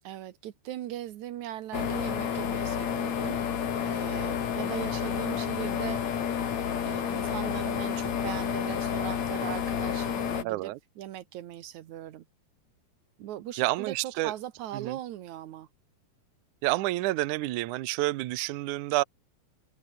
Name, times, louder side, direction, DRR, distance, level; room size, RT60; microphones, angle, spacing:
voice 1, 0.0-3.4 3.8-6.4 6.9-12.2 13.2-15.7, right 12 dB, 65° right, 2.0 m, -39 dB
sound 1, 1.7-10.4, left 8 dB, 50° left, 3.1 m, -30 dB
voice 2, 10.4-10.8 13.6-14.3 14.7-15.0 16.6-19.0, right 18 dB, 85° right, 1.7 m, -29 dB
omnidirectional pair, 4.7 m